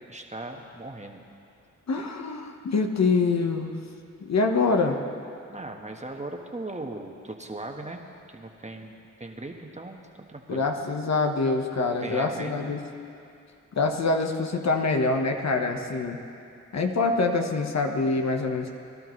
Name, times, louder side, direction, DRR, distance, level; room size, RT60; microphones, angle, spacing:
voice 1, 0.1-1.2 5.5-8.0 8.3-10.0 10.3-10.7 12.0-12.8, right 2 dB, 20° right, 2 dB, 1.4 m, -38 dB
voice 2, 1.9-3.8 4.2-5.0 10.5-12.8 13.7-16.2 16.7-18.7, left 3 dB, 55° left, 3 dB, 1.2 m, -25 dB
22.5 x 12.0 x 3.2 m, 2.5 s
cardioid pair, 55°, 32 cm